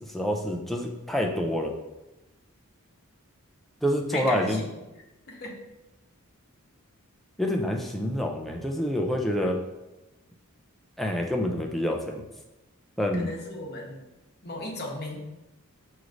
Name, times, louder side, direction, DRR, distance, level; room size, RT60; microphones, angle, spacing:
voice 1, 0.0-1.8 3.8-4.6 7.4-9.6 11.0-12.2 13.0-13.3, equal, ahead, 1 dB, 0.4 m, -27 dB
voice 2, 4.1-4.7 5.3-5.6 13.1-14.1 14.4-15.2, left 2 dB, 45° left, -1 dB, 0.9 m, -36 dB
6.2 x 3.0 x 2.5 m, 1.0 s
head